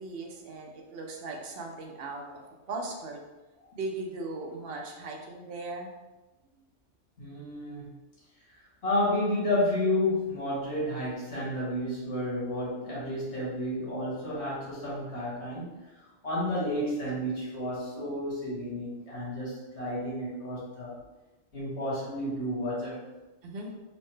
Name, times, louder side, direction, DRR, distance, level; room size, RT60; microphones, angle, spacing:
voice 1, 0.0-2.4 2.7-3.2 3.8-5.9 23.4-23.7, right 2 dB, 60° right, 1 dB, 0.7 m, -38 dB
voice 2, 7.2-7.9 8.5-15.6 16.2-21.0 21.5-23.0, left 1 dB, 65° left, -7 dB, 1.6 m, -31 dB
4.2 x 2.1 x 3.2 m, 1.1 s
omnidirectional pair, 1.2 m